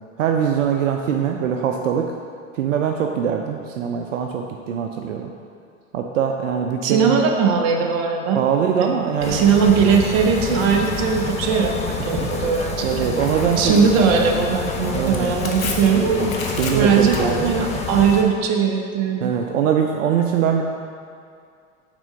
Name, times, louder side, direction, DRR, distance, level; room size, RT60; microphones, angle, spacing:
voice 1, 0.2-2.1 2.6-5.3 5.9-7.2 8.3-9.5 12.1-12.3 12.8-13.9 14.9-15.3 16.6-17.5 19.2-20.6, right 8 dB, 70° right, 3 dB, 0.6 m, -22 dB
voice 2, 6.8-8.4 8.8-13.1 13.5-16.3 16.7-19.3, right 6 dB, 40° right, 2 dB, 0.9 m, -19 dB
sound 1, 9.2-18.2, left 4 dB, 15° left, 0.6 m, -27 dB
Tearing, 9.9-18.1, left 4 dB, 90° left, 0.9 m, -37 dB
6.1 x 3.8 x 5.2 m, 2.3 s
hypercardioid pair, 95°, 40 cm